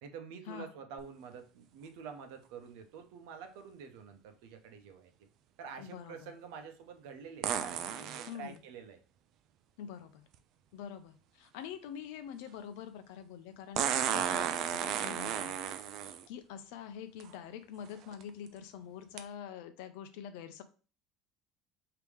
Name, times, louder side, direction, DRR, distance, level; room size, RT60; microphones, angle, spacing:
voice 1, 0.0-5.1 5.6-9.0 14.0-14.4, right 6 dB, 75° right, 6 dB, 0.7 m, -48 dB
sound 1, 1.0-1.1 7.4-8.3 10.3-10.4 13.8-16.2 17.2-17.3 17.9-18.2 19.2-19.3, right 9 dB, 45° right, 0.4 m, -33 dB
voice 2, 5.8-6.3 8.3-8.6 9.8-10.3 10.7-15.6 16.3-20.6, left 8 dB, 75° left, 9 dB, 0.6 m, -45 dB
3.5 x 2.9 x 4.7 m, 0.36 s
cardioid pair, 175°, 0 cm